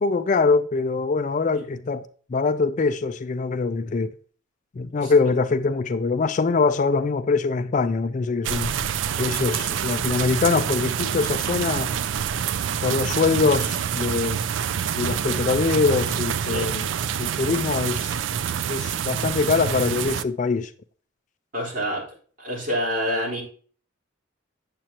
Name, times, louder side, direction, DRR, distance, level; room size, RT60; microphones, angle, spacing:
voice 1, 0.0-2.0 2.3-4.1 4.8-8.7 9.2-11.9 12.8-14.4 15.0-16.9 17.2-18.1 18.7-20.7, left 4 dB, 40° left, 0.4 m, -23 dB
sound 1, 8.4-20.2, right 8 dB, 70° right, 0.4 m, -27 dB
voice 2, 16.4-16.7 21.5-22.0 22.4-23.4, equal, 45° right, 4.0 m, -27 dB
8.9 x 7.5 x 2.9 m
head